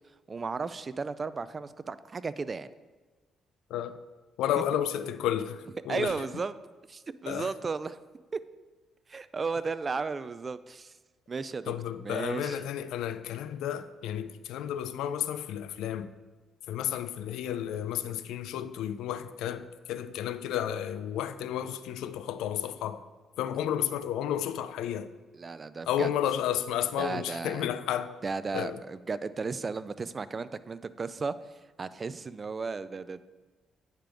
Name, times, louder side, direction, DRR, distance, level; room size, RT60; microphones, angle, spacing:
voice 1, 0.3-2.7 5.9-6.5 6.9-8.0 8.3-8.4 9.1-10.9 11.3-11.7 12.0-12.6 25.3-26.1 27.0-27.7 28.2-31.3 31.8-33.2, right 4 dB, 35° right, 0.3 m, -34 dB
voice 2, 4.4-6.1 7.3-7.5 11.7-16.1 16.7-23.0 23.4-25.1 25.9-28.2 28.5-28.8, left 10 dB, 90° left, 0.3 m, -32 dB
8.9 x 5.2 x 3.4 m
cardioid pair, 90°, 0 cm